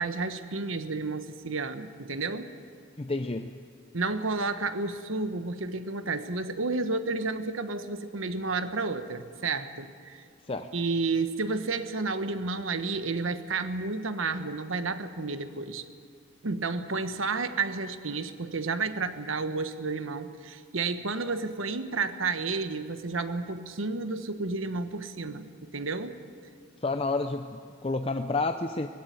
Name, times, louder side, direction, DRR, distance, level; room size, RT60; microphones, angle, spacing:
voice 1, 0.0-2.5 3.9-10.2 10.7-15.8 16.4-26.2, right 3 dB, 80° right, 10 dB, 1.2 m, -31 dB
voice 2, 3.0-3.5 10.5-10.7 26.8-28.9, left 3 dB, 30° left, 7 dB, 0.6 m, -30 dB
19.0 x 15.5 x 9.3 m, 2.3 s
head